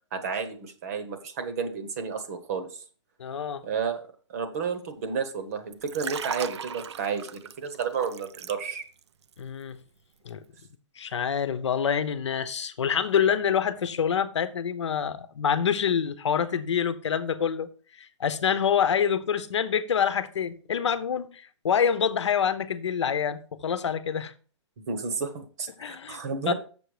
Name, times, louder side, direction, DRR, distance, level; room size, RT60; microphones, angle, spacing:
voice 1, 0.1-2.8 3.6-4.0 4.3-8.8 24.9-26.5, right 6 dB, 30° right, 1.1 m, -31 dB
voice 2, 3.2-3.7 9.4-9.8 10.2-10.4 11.0-17.7 18.0-24.3 25.8-26.2 26.5-26.6, left 7 dB, 70° left, 0.9 m, -26 dB
Liquid, 5.7-9.0 9.3-9.6, right 7 dB, 65° right, 0.6 m, -38 dB
7.0 x 6.9 x 4.9 m
hypercardioid pair, 170°, 16 cm